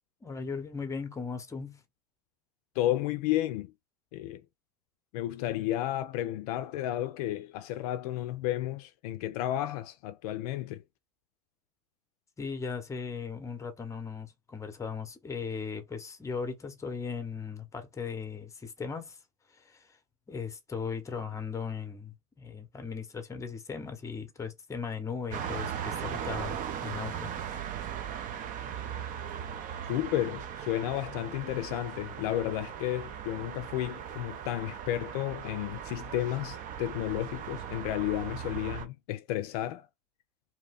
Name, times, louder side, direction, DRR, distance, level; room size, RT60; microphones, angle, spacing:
voice 1, 0.2-1.8 12.4-19.2 19.5-20.0 20.3-27.3, left 5 dB, 15° left, 0.8 m, -38 dB
voice 2, 2.8-3.7 4.1-4.4 5.1-10.8 29.9-39.9, left 13 dB, 65° left, 0.4 m, -32 dB
sound 1, 25.3-38.9, right 8 dB, 40° right, 0.6 m, -38 dB
2.7 x 2.1 x 3.4 m
hypercardioid pair, 95°, 21 cm